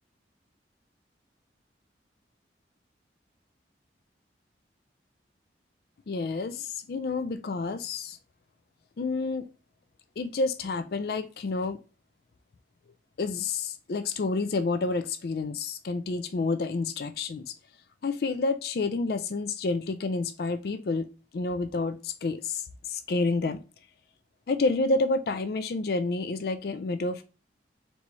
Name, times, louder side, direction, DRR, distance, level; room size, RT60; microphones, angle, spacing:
voice 1, 6.1-8.2 9.0-9.5 10.2-11.8 13.2-17.6 18.0-23.6 24.5-27.2, left 3 dB, 55° left, 0.4 m, -29 dB
4.0 x 3.4 x 3.0 m
head